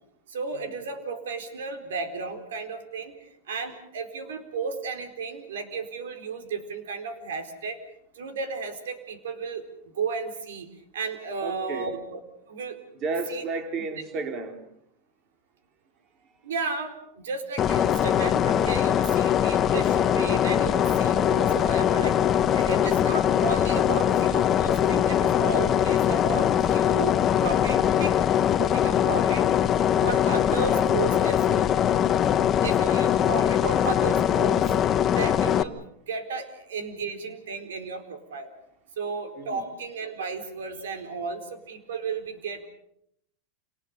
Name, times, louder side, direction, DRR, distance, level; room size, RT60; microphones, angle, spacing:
voice 1, 0.3-7.8 8.1-9.6 9.9-10.7 10.9-12.2 12.5-12.8 13.3-13.4 16.4-28.3 28.6-29.6 30.0-31.7 32.6-34.7 35.1-35.8 36.1-38.5 39.0-42.7, right 4 dB, 90° right, 7 dB, 4.3 m, -34 dB
voice 2, 11.4-11.9 12.9-14.6 39.4-39.6, right 3 dB, 35° right, 5 dB, 3.8 m, -35 dB
sound 1, 17.6-35.6, left 10 dB, 30° left, 1.1 m, -22 dB
29.0 x 19.5 x 6.7 m, 0.74 s
supercardioid pair, 135°, 0 cm